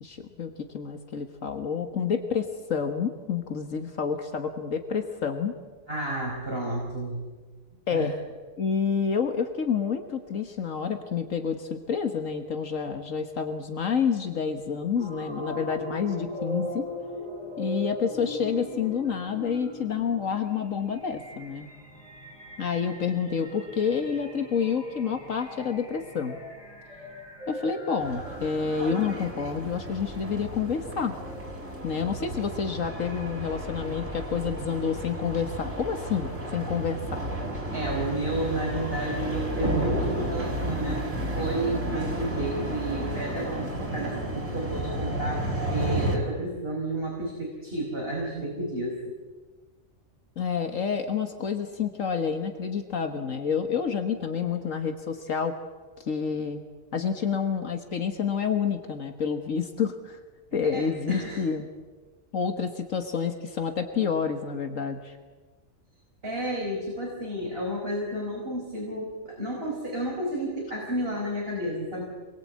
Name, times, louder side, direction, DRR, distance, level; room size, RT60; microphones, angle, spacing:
voice 1, 0.0-5.5 7.9-8.2 8.6-16.9 17.6-21.7 22.6-26.4 27.5-31.1 31.8-37.2 50.4-55.6 56.0-56.6 56.9-60.2 60.5-61.7 62.3-65.2, left 6 dB, 75° left, 6 dB, 1.9 m, -29 dB
voice 2, 5.9-7.3 7.9-8.1 37.7-49.0 60.7-61.4 66.2-72.0, right 1 dB, 45° right, -2 dB, 5.1 m, -31 dB
sound 1, 15.0-29.5, equal, 20° left, 5.8 m, -40 dB
sound 2, 28.0-46.2, right 1 dB, 65° right, 5.5 m, -32 dB
27.5 x 21.5 x 8.7 m, 1.4 s
omnidirectional pair, 1.4 m